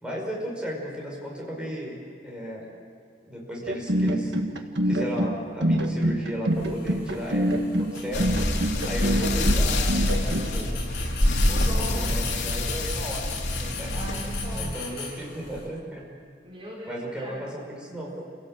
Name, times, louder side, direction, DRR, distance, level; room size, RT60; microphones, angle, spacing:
voice 1, 0.0-2.0 2.2-2.7 3.2-4.3 4.8-8.3 8.8-10.7 11.5-13.3 13.6-13.9 14.5-16.1 16.9-18.2, equal, 5° right, -3 dB, 5.4 m, -35 dB
sound 1, 3.7-10.5, right 1 dB, 70° right, 1.7 m, -25 dB
sound 2, 6.5-15.7, left 5 dB, 60° left, 6.9 m, -40 dB
sound 3, 8.1-14.7, left 1 dB, 85° left, 2.3 m, -26 dB
voice 2, 11.4-12.2 13.5-14.9 16.4-17.5, equal, 30° right, -4 dB, 4.1 m, -40 dB
28.5 x 17.0 x 7.6 m, 2.4 s
head